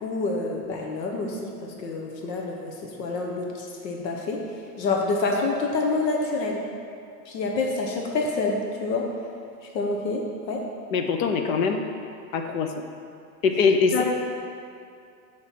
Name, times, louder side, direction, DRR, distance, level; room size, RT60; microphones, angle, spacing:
voice 1, 0.0-4.4 4.8-6.6 7.3-9.1 9.7-10.7 13.9-14.0, left 3 dB, 85° left, 0 dB, 1.1 m, -27 dB
voice 2, 10.9-11.8 12.3-12.7 13.4-14.0, left 5 dB, 55° left, 5 dB, 0.7 m, -22 dB
7.0 x 3.3 x 5.9 m, 2.5 s
supercardioid pair, 175°, 50 cm